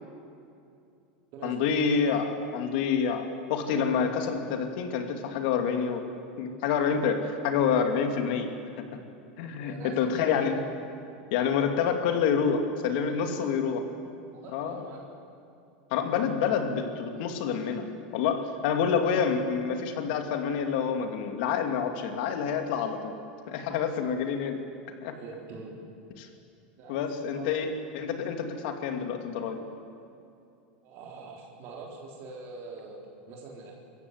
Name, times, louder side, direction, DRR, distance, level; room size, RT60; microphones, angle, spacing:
voice 1, 1.4-6.0 6.4-8.5 9.4-10.5 11.3-13.8 14.5-14.9 15.9-17.8 18.1-23.1 23.5-24.6 25.0-25.2 26.2-26.3 26.9-29.6, left 6 dB, 65° left, 5 dB, 2.6 m, -28 dB
voice 2, 9.6-10.5 13.1-13.4 14.3-15.1 25.1-25.8 26.8-27.6 30.8-33.7, right 4 dB, 50° right, -1 dB, 3.9 m, -44 dB
26.0 x 15.0 x 8.2 m, 2.6 s
supercardioid pair, 135°, 5 cm